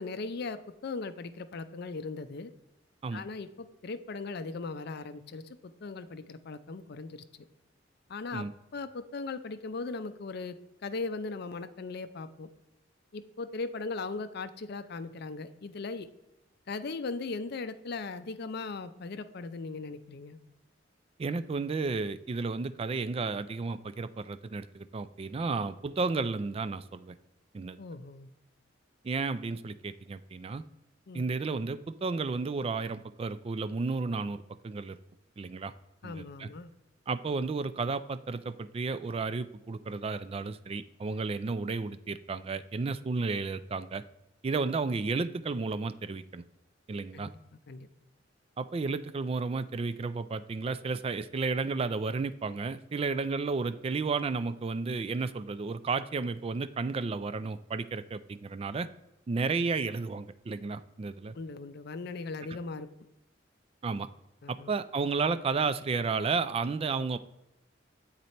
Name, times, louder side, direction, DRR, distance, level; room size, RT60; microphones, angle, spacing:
voice 1, 0.0-2.5 3.1-7.2 8.1-8.4 8.7-10.6 10.8-12.5 13.1-16.1 16.7-20.4 27.8-28.3 31.1-31.2 36.0-36.7 47.1-47.3 47.7-47.9 61.3-62.9 64.4-64.7, left 3 dB, 55° left, 11 dB, 0.5 m, -38 dB
voice 2, 21.2-27.2 27.5-27.8 29.0-30.6 31.1-35.0 35.4-35.7 36.0-36.5 37.1-44.0 44.4-46.4 46.9-47.3 48.6-58.9 59.3-61.3 63.8-64.1 64.5-67.2, right 4 dB, 30° right, 13 dB, 0.3 m, -32 dB
7.9 x 4.0 x 4.2 m, 0.93 s
head